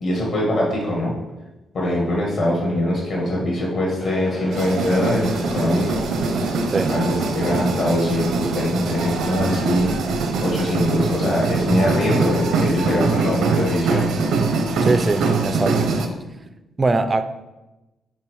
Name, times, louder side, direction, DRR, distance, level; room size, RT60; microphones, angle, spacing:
voice 1, 0.0-1.1 1.7-6.0 6.9-9.9 10.4-14.1, left 1 dB, 60° left, -3 dB, 1.9 m, -22 dB
sound 1, 4.0-11.6, left 1 dB, 25° left, 0.9 m, -37 dB
sound 2, 4.5-16.1, right 3 dB, 85° right, 0.7 m, -23 dB
voice 2, 14.8-15.9 16.8-17.2, right 3 dB, 20° right, 11 dB, 0.4 m, -21 dB
5.6 x 4.5 x 4.8 m, 1.0 s
cardioid pair, 150°, 0 cm